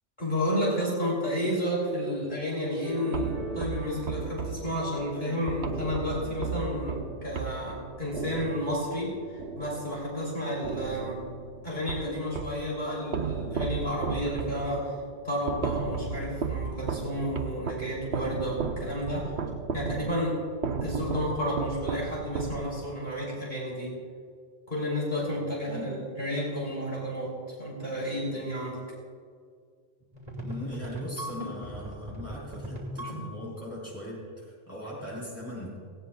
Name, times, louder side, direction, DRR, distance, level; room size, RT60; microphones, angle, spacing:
voice 1, 0.2-11.2 11.6-14.9 15.2-19.3 19.7-20.4 20.8-23.9 24.7-27.3 27.6-28.8, equal, 45° left, -5 dB, 3.5 m, -31 dB
sound 1, 2.8-8.4, equal, 30° right, 3.8 m, -44 dB
sound 2, 3.1-10.3 10.6-12.7 13.1-23.0, right 5 dB, 80° right, 1.1 m, -35 dB
voice 2, 25.7-26.0 30.4-35.8, left 1 dB, 15° left, -5 dB, 4.1 m, -40 dB
sound 3, 30.1-33.6, equal, 45° right, 2.6 m, -38 dB
18.0 x 17.5 x 2.4 m, 2.1 s
omnidirectional pair, 1.1 m